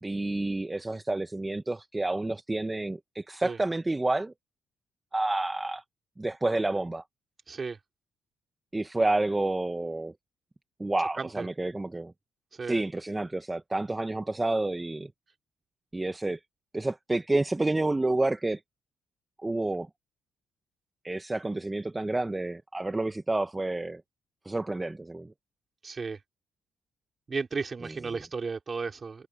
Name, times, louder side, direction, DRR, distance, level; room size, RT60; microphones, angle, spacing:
voice 1, 0.0-4.3 5.1-5.8 6.2-7.0 8.7-10.1 10.8-12.1 12.6-15.1 15.9-16.4 16.7-18.6 19.4-19.9 21.0-24.0 24.4-25.3 27.8-28.2, right 2 dB, 15° right, 1.1 m, -29 dB
voice 2, 7.5-7.8 11.2-11.4 12.6-12.8 25.8-26.2 27.3-29.3, right 4 dB, 35° right, 3.8 m, -34 dB
cardioid pair, 90°, 0 cm